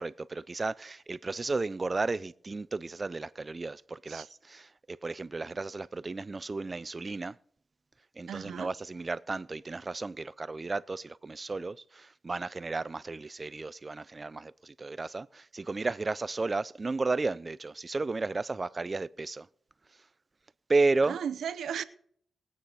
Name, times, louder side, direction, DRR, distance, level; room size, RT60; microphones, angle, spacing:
voice 1, 0.0-7.4 8.2-19.5 20.7-21.2, right 3 dB, 35° right, 0.5 m, -33 dB
voice 2, 8.3-8.7 21.1-21.8, right 8 dB, 85° right, 0.7 m, -35 dB
21.0 x 8.5 x 4.0 m
cardioid pair, 75°, 0 cm